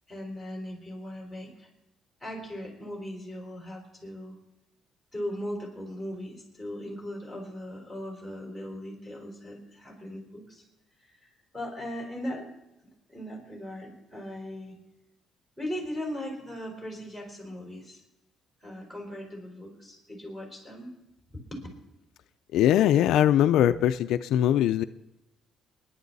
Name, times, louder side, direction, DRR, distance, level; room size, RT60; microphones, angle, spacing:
voice 1, 0.1-1.7 2.2-4.4 5.1-10.6 11.0-12.5 13.1-14.8 15.6-18.0 18.6-20.9 21.5-21.7, equal, 5° right, 4.5 m, -38 dB
voice 2, 22.5-24.8, left 11 dB, 80° left, 0.5 m, -21 dB
28.5 x 10.5 x 4.1 m
cardioid pair, 160°, 0 cm